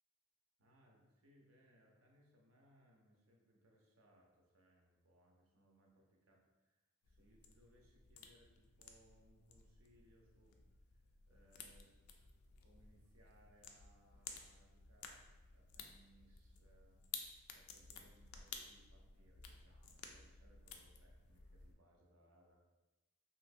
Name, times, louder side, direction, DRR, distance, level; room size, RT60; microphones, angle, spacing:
voice 1, 0.6-6.8 7.1-10.6 10.9-12.0 12.6-15.2 15.5-17.0 17.5-22.6, right 1 dB, 70° right, 0 dB, 0.6 m, -70 dB
sound 1, 7.0-21.7, left 6 dB, 85° left, 0.4 m, -55 dB
3.1 x 2.7 x 2.6 m, 1.1 s
head